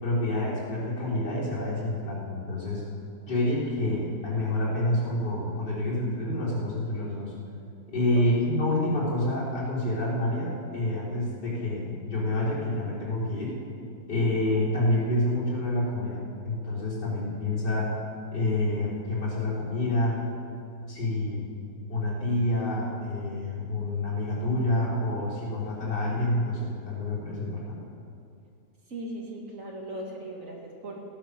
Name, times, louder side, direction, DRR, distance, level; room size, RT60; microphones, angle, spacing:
voice 1, 0.0-2.8 3.2-7.3 7.9-13.6 14.1-18.0 18.3-20.3 20.9-21.4 21.9-27.8, left 1 dB, 80° left, -7 dB, 4.4 m, -28 dB
voice 2, 28.9-31.0, right 1 dB, 50° right, 0 dB, 2.2 m, -38 dB
16.0 x 10.0 x 6.7 m, 2.5 s
omnidirectional pair, 1.8 m